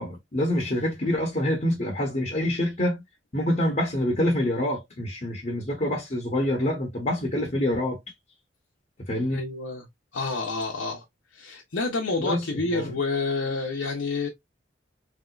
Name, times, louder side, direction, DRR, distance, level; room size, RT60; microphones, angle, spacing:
voice 1, 0.0-3.0 3.3-8.0 9.1-9.4 12.2-12.4 12.7-13.0, left 1 dB, 40° left, 1.0 m, -26 dB
voice 2, 9.3-9.8 10.1-11.0 11.3-14.3, left 3 dB, 80° left, 0.8 m, -28 dB
3.4 x 2.9 x 2.4 m
head